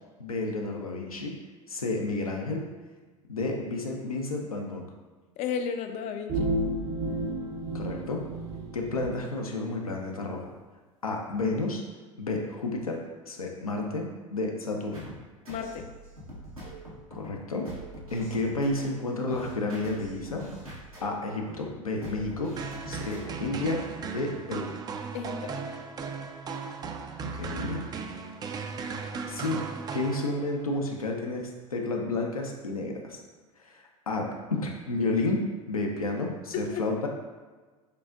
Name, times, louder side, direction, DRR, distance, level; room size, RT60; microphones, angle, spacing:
voice 1, 0.2-1.4 1.7-2.7 3.3-4.9 7.7-8.2 8.7-10.4 11.0-11.8 12.2-13.0 13.3-15.1 17.1-17.7 18.1-20.5 21.0-22.6 22.9-23.8 24.1-24.7 27.2-27.9 29.2-29.6 29.9-33.2 33.6-35.4 35.7-37.1, left 2 dB, 85° left, 1 dB, 0.6 m, -31 dB
voice 2, 5.4-6.5 15.5-15.8 25.1-25.5 36.5-36.8, left 6 dB, 40° left, 7 dB, 0.4 m, -33 dB
sound 1, 6.3-9.1, right 1 dB, 55° right, 0.8 m, -31 dB
sound 2, 14.9-23.6, right 1 dB, 90° right, 1.2 m, -44 dB
sound 3, 22.6-30.7, right 5 dB, 20° right, 0.3 m, -37 dB
6.6 x 2.4 x 2.5 m, 1.3 s
figure-of-eight pair, 75°, 18 cm